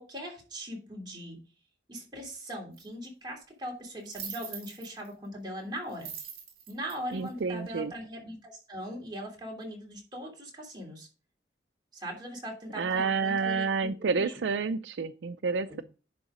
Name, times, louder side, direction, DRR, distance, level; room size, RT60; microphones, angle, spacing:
voice 1, 0.0-1.4 1.9-6.1 6.7-11.1 11.9-14.4 15.7-15.8, equal, 25° right, -1 dB, 2.9 m, -40 dB
sound 1, 2.8-2.9 4.1-5.1 5.9-7.8, right 7 dB, 55° right, 2.3 m, -42 dB
voice 2, 7.1-7.9 12.8-15.8, right 5 dB, 80° right, 12 dB, 0.4 m, -29 dB
10.5 x 3.9 x 4.9 m, 0.34 s
head